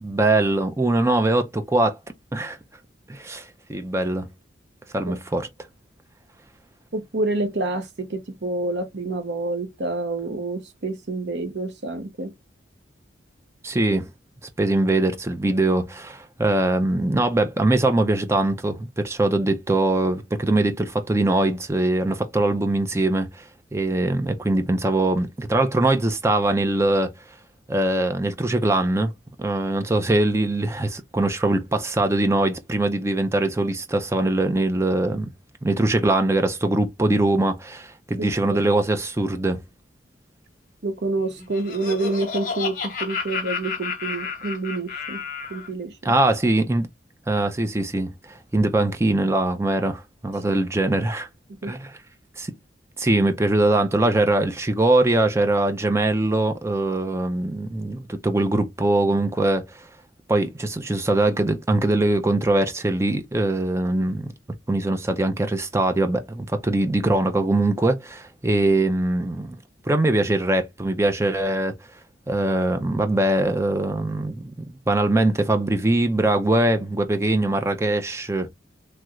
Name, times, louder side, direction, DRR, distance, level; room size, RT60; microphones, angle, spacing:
voice 1, 0.0-2.0 2.3-2.6 3.1-4.3 4.9-5.5 13.6-14.1 14.6-27.1 27.7-29.1 29.4-35.3 35.6-39.6 46.0-46.9 47.3-51.3 51.6-51.9 52.4-52.5 53.0-59.8 60.3-64.3 64.7-69.6 69.8-71.7 72.3-74.5 74.9-78.5, right 2 dB, 15° right, 0.4 m, -22 dB
voice 2, 6.9-12.3 38.2-38.6 40.8-45.2 45.5-46.1 51.6-51.7, right 2 dB, 65° right, 0.8 m, -28 dB
Laughter, 41.2-45.7, left 5 dB, 45° left, 0.9 m, -31 dB
3.2 x 2.4 x 2.9 m
head